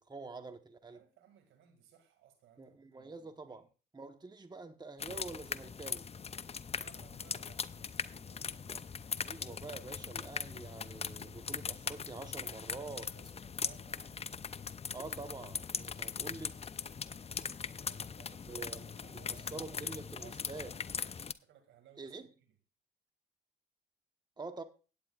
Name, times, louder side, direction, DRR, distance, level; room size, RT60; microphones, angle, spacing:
voice 1, 0.0-1.0 2.6-3.7 3.9-6.1 9.2-13.2 14.9-16.6 18.5-19.1 19.5-20.7 22.0-22.3 24.4-24.6, right 3 dB, 20° right, 1.1 m, -46 dB
voice 2, 0.8-3.1 3.4-3.6 6.7-8.9 13.1-14.4 17.6-21.1 21.4-22.1, right 9 dB, 80° right, 2.2 m, -62 dB
sound 1, 5.0-21.3, left 6 dB, 30° left, 0.6 m, -40 dB
18.0 x 8.7 x 2.4 m
supercardioid pair, 60°, 20 cm